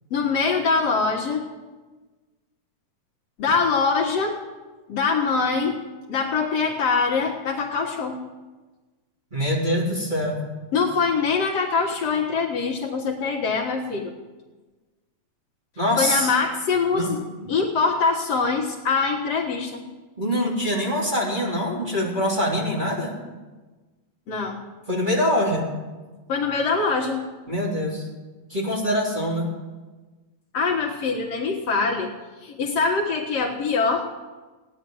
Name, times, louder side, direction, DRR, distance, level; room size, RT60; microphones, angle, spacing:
voice 1, 0.1-1.5 3.4-4.4 4.9-5.8 6.1-8.2 10.7-14.1 16.0-17.2 17.5-19.8 24.3-24.6 26.3-27.2 30.5-32.1 32.4-34.1, left 4 dB, 60° left, -1 dB, 2.5 m, -23 dB
voice 2, 9.3-10.4 15.8-16.4 16.9-17.1 20.2-23.1 24.9-25.6 27.5-28.1 28.5-29.5, equal, 15° right, -5 dB, 3.5 m, -24 dB
17.0 x 10.0 x 7.9 m, 1.3 s
omnidirectional pair, 3.3 m